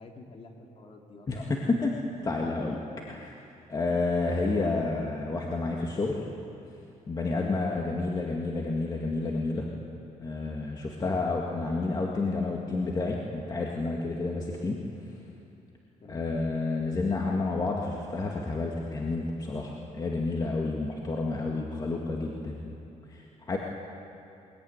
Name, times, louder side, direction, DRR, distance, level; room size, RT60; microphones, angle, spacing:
voice 1, 0.0-1.5 7.2-7.6 11.0-11.2 16.0-16.2, left 3 dB, 45° left, 2 dB, 3.1 m, -46 dB
voice 2, 1.3-1.9 2.2-2.8 3.1-3.3 3.7-6.2 7.1-9.7 10.2-14.8 16.1-22.8 23.1-23.6, left 3 dB, 30° left, -1 dB, 2.0 m, -30 dB
21.5 x 21.5 x 9.6 m, 2.7 s
cardioid pair, 145°, 14 cm